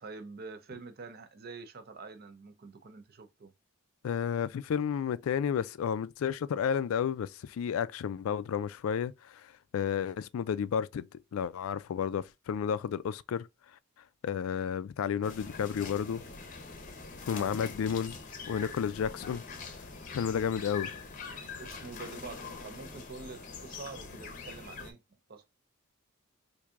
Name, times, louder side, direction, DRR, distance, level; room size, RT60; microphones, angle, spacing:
voice 1, 0.0-3.5 17.3-17.5 21.6-25.0 25.3-25.5, right 4 dB, 45° right, 0.5 m, -46 dB
voice 2, 4.0-13.5 14.2-16.2 17.3-18.2 18.5-19.4 20.1-20.9, left 7 dB, 75° left, 0.3 m, -32 dB
sound 1, 15.2-24.9, left 4 dB, 40° left, 0.7 m, -44 dB
4.5 x 2.7 x 2.4 m
head